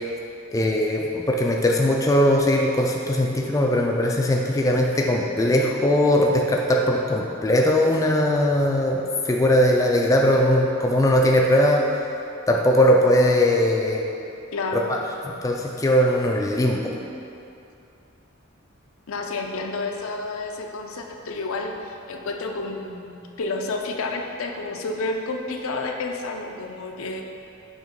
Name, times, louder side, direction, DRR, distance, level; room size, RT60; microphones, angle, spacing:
voice 1, 0.5-11.8 12.5-14.0 14.7-15.0 15.3-16.9, left 1 dB, 15° left, 0 dB, 0.3 m, -20 dB
voice 2, 14.5-14.9 19.1-27.2, left 3 dB, 75° left, 2 dB, 0.5 m, -30 dB
6.3 x 2.9 x 5.1 m, 2.7 s
head